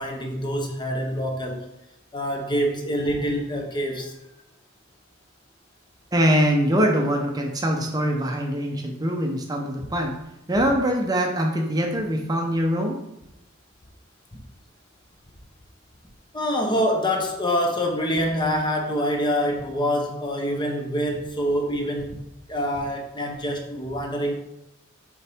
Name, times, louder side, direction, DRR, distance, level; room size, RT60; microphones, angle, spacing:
voice 1, 0.0-1.6 2.1-4.1 16.3-22.2 22.5-24.3, equal, 20° left, 2 dB, 0.7 m, -25 dB
voice 2, 6.1-10.1 10.5-13.0, equal, 20° right, 1 dB, 0.6 m, -23 dB
7.2 x 3.9 x 3.5 m, 0.87 s
head